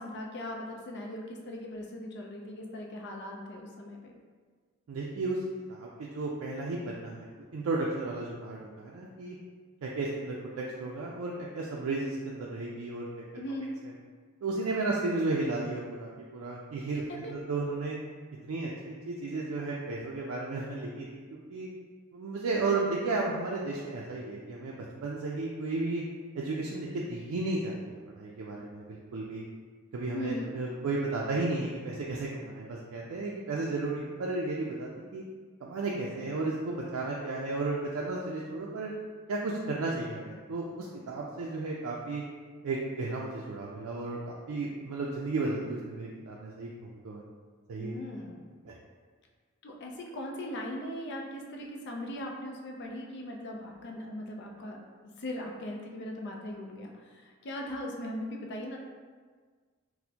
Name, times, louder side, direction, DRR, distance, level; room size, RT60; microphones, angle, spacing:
voice 1, 0.0-4.1 13.3-13.7 17.1-17.3 30.1-30.5 47.8-48.5 49.6-58.8, left 1 dB, 55° left, 1 dB, 0.5 m, -39 dB
voice 2, 4.9-5.4 5.7-7.3 7.5-9.4 9.8-13.1 14.4-17.0 17.3-18.0 18.4-21.1 21.3-21.7 22.1-24.8 25.0-26.0 26.4-27.8 28.2-29.4 29.9-35.2 35.6-38.9 39.3-42.2 42.6-47.2 47.7-48.0 48.7-48.8, right 3 dB, 85° right, -3 dB, 0.4 m, -33 dB
4.2 x 2.1 x 2.7 m, 1.5 s
head